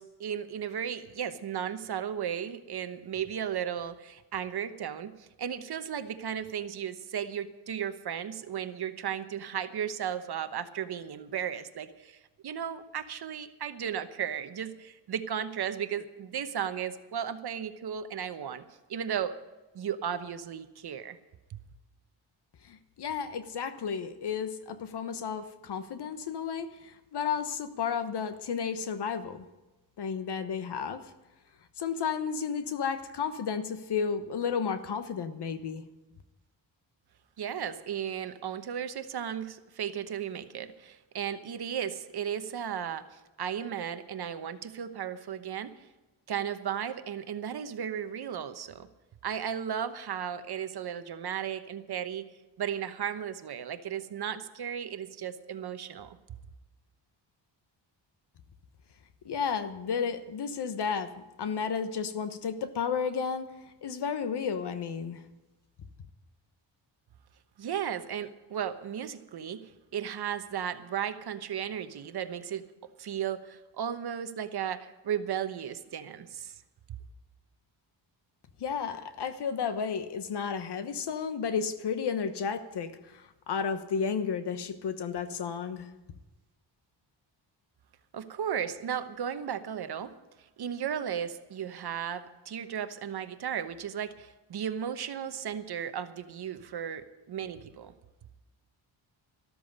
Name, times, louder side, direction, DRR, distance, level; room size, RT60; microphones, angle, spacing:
voice 1, 0.0-18.6 18.9-19.3 19.7-21.2 37.4-45.7 46.3-48.9 49.2-52.3 52.6-56.2 67.6-69.6 69.9-72.6 73.0-76.6 88.1-90.1 90.6-97.9, right 8 dB, 55° right, 10 dB, 1.0 m, -35 dB
voice 2, 22.6-29.5 30.0-31.0 31.8-35.8 59.2-63.5 63.8-65.2 78.6-85.9, left 6 dB, 60° left, 11 dB, 1.2 m, -32 dB
13.5 x 13.0 x 5.4 m, 1.1 s
wide cardioid pair, 135°, 46 cm